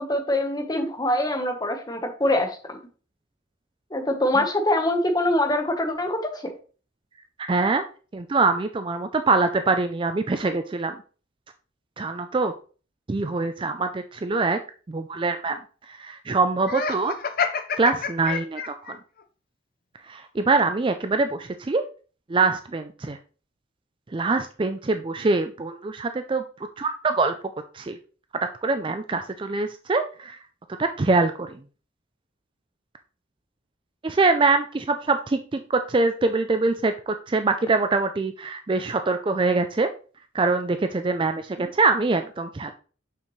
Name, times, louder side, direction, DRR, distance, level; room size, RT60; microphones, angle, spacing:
voice 1, 0.0-2.8 3.9-6.2 41.6-41.7, left 1 dB, 20° left, 3 dB, 1.1 m, -24 dB
voice 2, 7.4-7.8 8.1-11.0 12.0-12.5 13.1-14.6 14.9-15.6 15.9-17.1 17.8-19.0 20.1-21.8 22.3-23.2 24.1-26.4 26.8-27.3 27.7-28.0 28.6-30.4 30.8-31.6 34.0-39.9 40.3-42.7, right 3 dB, 25° right, 8 dB, 0.4 m, -24 dB
Laughter, 16.6-19.0, left 6 dB, 45° left, 0.6 m, -28 dB
6.7 x 5.8 x 3.2 m, 0.38 s
head